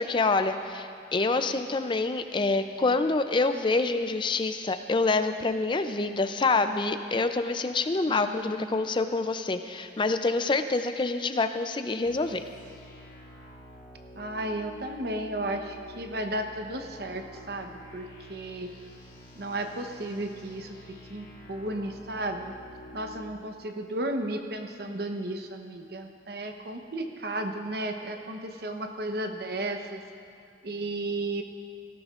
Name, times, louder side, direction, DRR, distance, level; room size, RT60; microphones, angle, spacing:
voice 1, 0.0-12.4, left 3 dB, 25° left, 9 dB, 0.4 m, -26 dB
voice 2, 8.1-9.0 14.1-18.7 19.4-22.6 22.9-30.0 30.6-31.4, right 1 dB, 60° right, 5 dB, 0.9 m, -34 dB
sound 1, 12.0-23.3, equal, 90° left, 2.9 m, -48 dB
17.5 x 14.0 x 2.5 m, 2.3 s
head